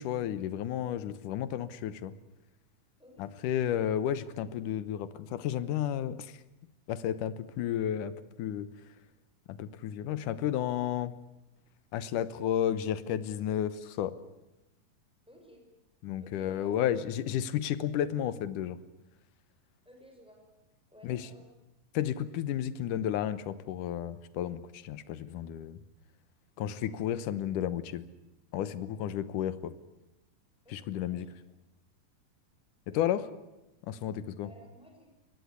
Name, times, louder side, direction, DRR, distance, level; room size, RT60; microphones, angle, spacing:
voice 1, 0.0-2.1 3.2-6.3 6.9-8.1 8.4-8.7 9.5-11.1 11.9-14.2 16.0-18.8 21.0-21.2 21.9-25.8 26.6-28.0 28.5-29.7 30.7-31.3 32.9-33.2 33.9-34.5, left 10 dB, 70° left, 15 dB, 2.4 m, -32 dB
voice 2, 3.0-3.6 15.3-15.6 16.2-16.8 19.8-20.4 20.9-21.4 30.6-31.3 32.9-33.1 34.4-35.2, equal, ahead, 1 dB, 5.9 m, -56 dB
23.5 x 18.5 x 9.6 m, 0.97 s
omnidirectional pair, 4.0 m